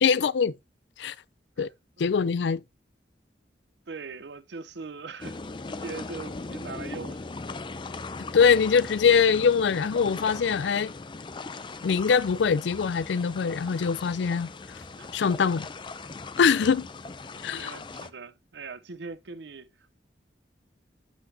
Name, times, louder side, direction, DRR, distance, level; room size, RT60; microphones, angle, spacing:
voice 1, 0.0-0.5 1.0-1.1 1.6-1.7 2.0-2.6 8.3-10.9 11.8-14.5 15.1-15.7 16.4-16.9 17.4-17.7, left 6 dB, 85° left, 0.4 m, -23 dB
voice 2, 3.9-5.4 5.6-7.3 15.0-15.1 17.3-20.0, right 4 dB, 80° right, 0.7 m, -41 dB
sound 1, 5.2-18.1, left 3 dB, 25° left, 0.4 m, -39 dB
7.8 x 6.2 x 2.7 m
head